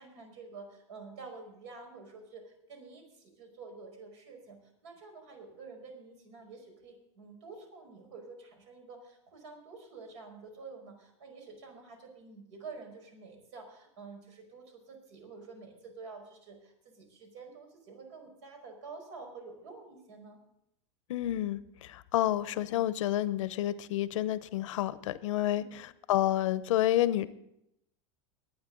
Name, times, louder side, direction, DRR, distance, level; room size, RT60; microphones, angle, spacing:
voice 1, 0.0-20.4 25.5-25.8, right 4 dB, 70° right, 3 dB, 5.1 m, -49 dB
voice 2, 21.1-27.3, left 13 dB, 80° left, 15 dB, 0.8 m, -29 dB
22.0 x 9.3 x 3.9 m, 0.80 s
supercardioid pair, 145°, 16 cm